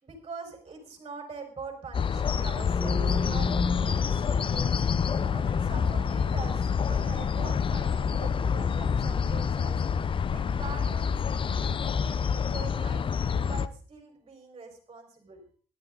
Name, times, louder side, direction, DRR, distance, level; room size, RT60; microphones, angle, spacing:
voice 1, 0.0-4.9 5.3-9.8 10.3-13.0 13.3-15.4, right 4 dB, 30° right, 3 dB, 4.5 m, -44 dB
sound 1, 1.9-13.7, left 6 dB, 30° left, 0.6 m, -27 dB
sound 2, 2.6-10.4, left 2 dB, ahead, 5.9 m, -37 dB
18.0 x 12.0 x 3.8 m, 0.42 s
cardioid pair, 110°, 17 cm